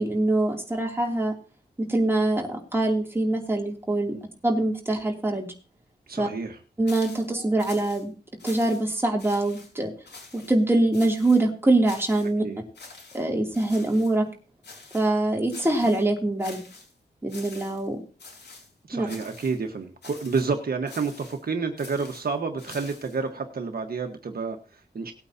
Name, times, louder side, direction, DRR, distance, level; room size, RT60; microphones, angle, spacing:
voice 1, 0.0-1.3 1.8-4.2 4.4-5.5 6.2-6.3 6.8-8.1 8.4-9.9 10.3-12.4 13.1-14.3 14.9-16.6 17.2-18.0 18.9-19.1, right 2 dB, 15° right, 1 dB, 2.8 m, -24 dB
voice 2, 6.1-6.6 12.4-12.6 18.9-25.1, right 4 dB, 60° right, 5 dB, 1.4 m, -30 dB
sound 1, 6.9-7.3 7.6-8.0 8.4-8.9 9.2-9.7 10.1-10.5 10.9-11.4 11.8-12.3 12.8-13.2 13.5-14.1 14.6-15.2 15.5-16.0 16.4-16.9 17.3-17.9 18.2-18.7 19.1-19.6 20.0-20.5 20.9-21.4 21.8-23.2, left 3 dB, 85° left, 6.0 m, -46 dB
19.0 x 8.8 x 2.8 m, 0.35 s
wide cardioid pair, 160°, 17 cm